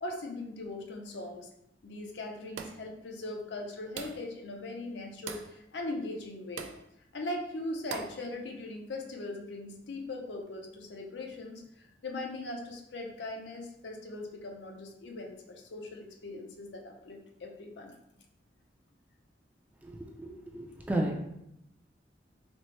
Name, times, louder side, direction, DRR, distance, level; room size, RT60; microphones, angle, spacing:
voice 1, 0.0-1.5 1.8-6.7 7.1-18.0, left 2 dB, 70° left, 2 dB, 0.6 m, -40 dB
sound 1, 2.6-2.9 4.0-4.3 5.3-5.6 6.6-6.8 7.9-8.2, right 6 dB, 90° right, 0.3 m, -41 dB
voice 2, 19.8-21.3, right 1 dB, 10° right, 0 dB, 0.4 m, -33 dB
4.2 x 2.0 x 3.1 m, 0.82 s
head